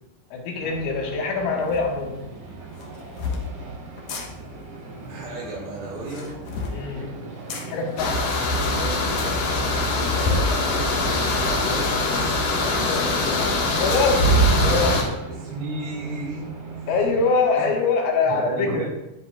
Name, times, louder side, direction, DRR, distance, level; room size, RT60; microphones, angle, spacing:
voice 1, 0.3-2.2 6.7-7.2 7.6-8.4 12.8-13.2 13.8-15.2 16.9-18.9, left 4 dB, 85° left, -1 dB, 4.1 m, -24 dB
sound 1, 0.6-17.3, right 3 dB, 65° right, 5.6 m, -39 dB
sound 2, 1.7-1.8 2.7-3.4 4.0-4.3 5.9-6.8 7.5-7.7 8.3-8.4 8.6-8.7 9.0-9.1 10.0-10.5 11.0-11.9, left 4 dB, 70° left, 2.0 m, -29 dB
voice 2, 5.1-6.4 8.5-9.0 10.1-13.6 15.2-16.5 17.6-17.7 18.3-18.9, right 2 dB, 85° right, -5 dB, 5.7 m, -34 dB
sound 3, 8.0-15.0, left 1 dB, 55° left, 3.1 m, -22 dB
21.0 x 7.6 x 2.6 m, 0.91 s
omnidirectional pair, 5.4 m